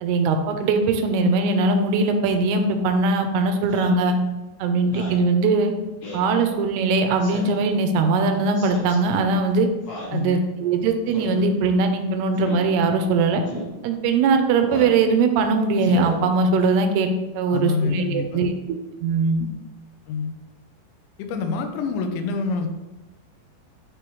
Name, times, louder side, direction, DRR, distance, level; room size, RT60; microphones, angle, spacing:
voice 1, 0.0-4.2 4.6-5.7 6.1-9.7 10.1-13.4 13.8-18.5 19.0-19.5, right 3 dB, 80° right, 6 dB, 2.4 m, -21 dB
Speech synthesizer, 3.7-4.0 4.8-5.2 6.0-6.3 7.2-7.6 8.5-9.0 9.8-10.2 11.1-11.4 12.3-12.6 13.5-13.7 14.6-15.0 15.8-16.2, left 1 dB, 55° left, 1.4 m, -35 dB
voice 2, 10.1-10.5 17.5-18.4 20.1-20.4 21.2-22.7, left 5 dB, 85° left, 6 dB, 3.0 m, -26 dB
10.0 x 3.5 x 3.0 m, 1.1 s
omnidirectional pair, 5.1 m